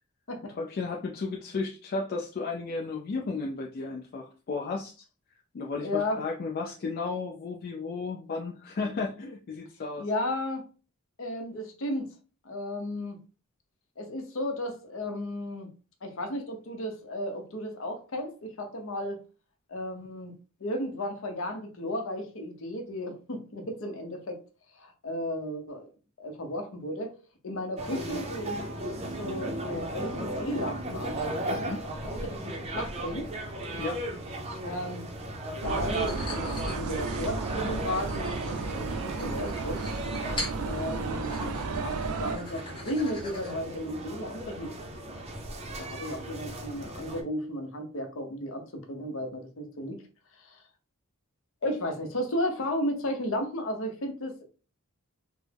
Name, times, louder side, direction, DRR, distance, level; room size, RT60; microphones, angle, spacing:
voice 1, 0.6-5.0 5.5-10.1 31.5-31.8 33.8-34.0, left 4 dB, 45° left, 0.4 m, -34 dB
voice 2, 5.8-6.2 10.0-10.6 11.2-12.1 12.4-13.2 14.0-15.7 16.0-19.2 19.7-20.3 20.6-24.4 24.7-25.9 26.2-27.1 27.4-28.6 29.2-33.3 34.6-35.0 35.5-39.8 40.6-44.7 45.8-50.0 50.4-50.6 51.6-54.4, left 1 dB, 65° left, 0.7 m, -34 dB
sound 1, 27.8-47.2, right 1 dB, 30° right, 0.5 m, -36 dB
sound 2, 35.6-42.4, right 4 dB, 85° right, 0.4 m, -33 dB
sound 3, 35.9-43.7, left 2 dB, 25° left, 0.9 m, -43 dB
3.4 x 2.0 x 3.3 m
head